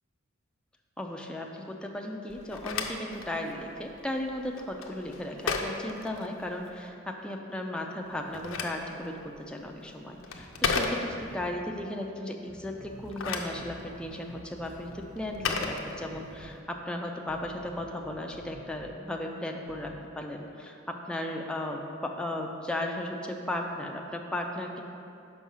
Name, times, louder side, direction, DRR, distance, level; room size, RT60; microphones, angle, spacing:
voice 1, 1.0-24.8, left 1 dB, 5° left, 1 dB, 0.4 m, -36 dB
Telephone, 2.3-6.8 8.0-11.5 12.9-16.5, left 4 dB, 80° left, 0.6 m, -35 dB
sound 1, 10.4-11.7 12.5-16.5 17.3-18.9 19.7-19.9, equal, 80° right, 1.2 m, -49 dB
6.1 x 5.5 x 5.5 m, 2.6 s
head